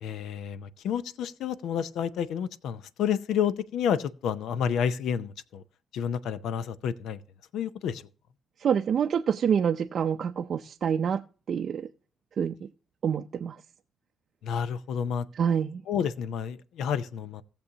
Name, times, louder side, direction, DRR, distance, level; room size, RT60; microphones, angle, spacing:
voice 1, 0.0-5.6 5.9-7.2 7.5-8.0 14.4-15.3 15.9-17.4, left 8 dB, 80° left, 0.6 m, -30 dB
voice 2, 8.6-11.2 11.5-11.9 12.4-12.7 13.0-13.6 15.3-15.8, right 7 dB, 55° right, 0.5 m, -27 dB
17.5 x 6.9 x 2.8 m
cardioid pair, 90°, 0 cm